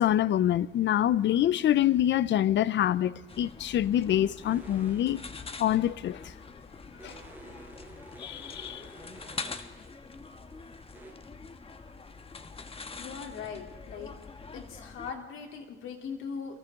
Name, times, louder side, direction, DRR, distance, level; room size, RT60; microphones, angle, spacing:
voice 1, 0.0-5.2 5.6-6.3 7.0-7.1 8.2-8.8, left 11 dB, 65° left, 0.7 m, -26 dB
sound 1, 3.3-15.1, left 4 dB, 30° left, 1.4 m, -44 dB
sound 2, 4.4-5.4 7.0-9.9 10.9-11.1, right 2 dB, 10° right, 7.0 m, -50 dB
voice 2, 13.0-14.1 14.5-16.6, left 6 dB, 80° left, 3.4 m, -40 dB
29.5 x 23.5 x 3.8 m
cardioid pair, 90°, 20 cm